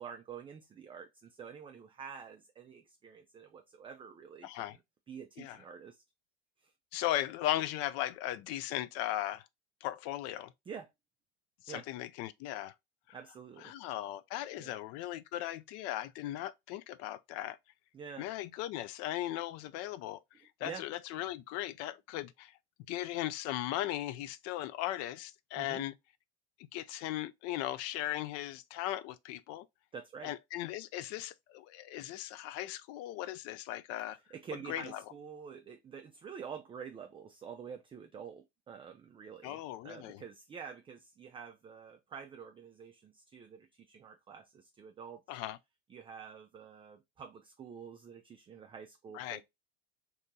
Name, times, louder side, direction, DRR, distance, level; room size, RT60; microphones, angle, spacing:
voice 1, 0.0-4.8 5.1-6.0 6.6-6.7 10.7-10.9 11.7-11.8 13.1-13.7 14.6-14.7 17.9-18.3 20.3-20.8 25.6-25.8 29.9-30.3 34.3-45.2 45.9-49.4, right 7 dB, 20° right, 0.3 m, -48 dB
voice 2, 4.4-4.8 5.4-5.6 6.9-9.4 9.8-10.5 11.6-12.7 13.6-17.6 18.2-20.2 20.6-22.5 22.9-25.9 26.7-29.7 30.2-34.2 34.7-35.0 39.4-40.2 45.3-45.6 49.1-49.4, left 14 dB, 55° left, 0.4 m, -37 dB
2.7 x 2.6 x 3.5 m
hypercardioid pair, 85°, 31 cm